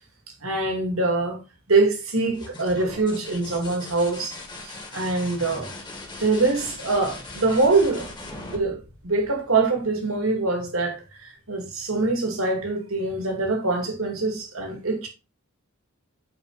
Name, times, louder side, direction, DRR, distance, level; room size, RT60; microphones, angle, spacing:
voice 1, 0.4-1.4 1.7-4.4 4.6-5.7 6.2-8.1 8.5-8.8 9.0-15.1, right 3 dB, 70° right, 2.3 m, -24 dB
sound 1, 2.2-9.8 11.6-12.1, left 2 dB, 20° left, 1.7 m, -40 dB
8.2 x 4.5 x 4.1 m
head